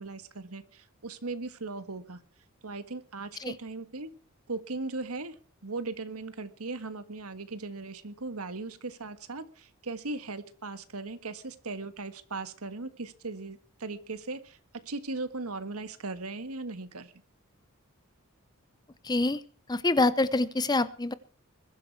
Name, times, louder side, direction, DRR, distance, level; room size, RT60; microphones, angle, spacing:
voice 1, 0.0-2.2 2.6-4.1 4.5-5.4 5.6-14.6 14.8-17.1, right 3 dB, 85° right, 11 dB, 1.6 m, -38 dB
voice 2, 19.1-19.4 19.7-21.1, left 2 dB, 20° left, 16 dB, 0.7 m, -26 dB
21.5 x 12.5 x 4.7 m, 0.39 s
head